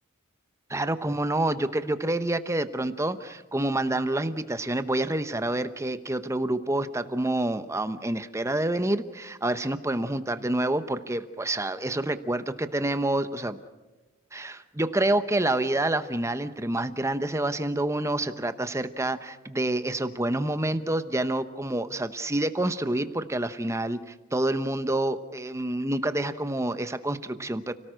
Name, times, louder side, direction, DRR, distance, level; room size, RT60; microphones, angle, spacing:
voice 1, 0.7-13.6 14.3-24.0 24.3-27.7, right 1 dB, 15° right, 11 dB, 0.9 m, -28 dB
30.0 x 18.0 x 6.4 m, 1.1 s
head